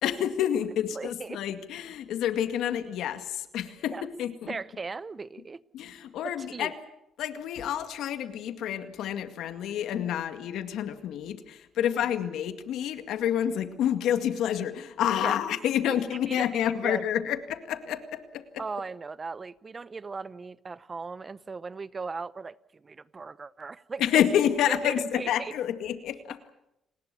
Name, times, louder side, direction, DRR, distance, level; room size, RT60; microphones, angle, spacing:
voice 1, 0.0-4.5 5.7-6.7 7.2-18.6 24.0-26.4, left 10 dB, 80° left, 9 dB, 2.1 m, -29 dB
voice 2, 0.9-1.4 3.9-4.1 4.4-5.9 6.2-6.7 11.9-12.1 15.2-15.3 15.9-17.0 18.6-24.2 24.7-25.5, right 4 dB, 30° right, 19 dB, 0.8 m, -38 dB
30.0 x 19.5 x 7.0 m, 0.84 s
cardioid pair, 90°, 0 cm